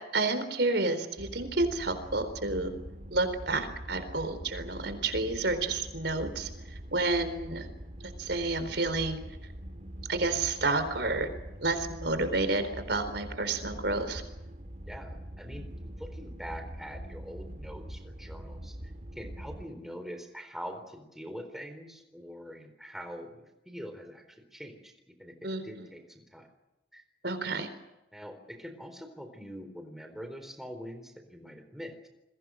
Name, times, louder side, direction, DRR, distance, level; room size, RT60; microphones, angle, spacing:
voice 1, 0.1-2.7 3.1-6.5 6.9-7.7 8.2-9.2 10.1-11.3 11.6-14.2 25.4-25.9 27.2-27.7, right 2 dB, 75° right, 10 dB, 4.1 m, -30 dB
sound 1, 1.2-19.7, equal, 40° right, 2.4 m, -44 dB
voice 2, 14.9-18.8 19.1-24.9 25.2-26.5 26.9-27.0 28.1-32.1, equal, ahead, 6 dB, 4.0 m, -44 dB
29.5 x 22.0 x 6.5 m, 0.93 s
head